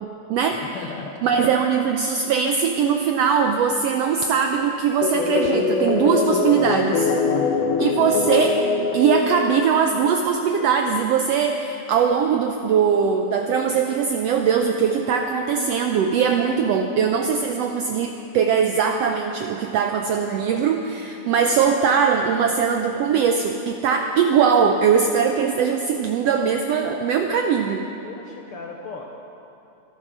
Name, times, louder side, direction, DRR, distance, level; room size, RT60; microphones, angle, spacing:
voice 1, 0.0-0.6 1.2-7.1 7.8-8.6 8.9-27.9, right 6 dB, 80° right, 4 dB, 1.4 m, -21 dB
voice 2, 0.6-1.2 7.3-7.7 28.0-29.2, left 5 dB, 70° left, 1 dB, 1.4 m, -37 dB
sound 1, 5.0-10.2, left 4 dB, 85° left, 2.6 m, -23 dB
25.0 x 8.7 x 6.1 m, 2.9 s
omnidirectional pair, 3.6 m